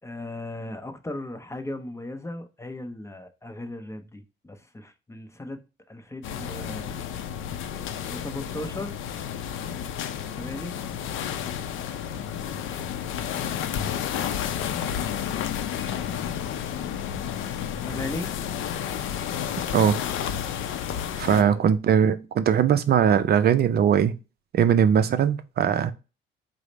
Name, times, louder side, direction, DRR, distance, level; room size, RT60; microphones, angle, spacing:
voice 1, 0.0-7.0 8.1-9.0 10.3-10.8 17.8-18.3 21.2-21.7, left 1 dB, 15° left, 0.7 m, -37 dB
sound 1, 6.2-21.4, left 9 dB, 85° left, 0.5 m, -31 dB
voice 2, 19.7-20.0 21.2-24.1 24.5-25.9, right 8 dB, 55° right, 0.4 m, -20 dB
4.8 x 2.1 x 4.0 m
cardioid pair, 90°, 20 cm